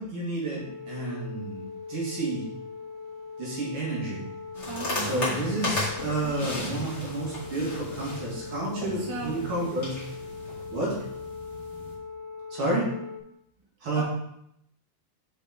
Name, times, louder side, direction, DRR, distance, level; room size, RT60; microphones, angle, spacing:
voice 1, 0.0-2.5 3.4-4.2 5.0-10.0 10.7-11.1 12.5-12.9 13.8-14.0, right 2 dB, 45° right, -5 dB, 2.7 m, -30 dB
sound 1, 0.6-13.2, left 5 dB, 70° right, 1.9 m, -41 dB
sound 2, 4.5-11.9, left 2 dB, 25° left, 2.3 m, -35 dB
voice 2, 4.7-5.4 6.0-6.8 8.8-9.3 13.9-14.0, right 3 dB, 20° right, -5 dB, 1.0 m, -38 dB
7.3 x 5.2 x 4.1 m, 0.76 s
omnidirectional pair, 3.4 m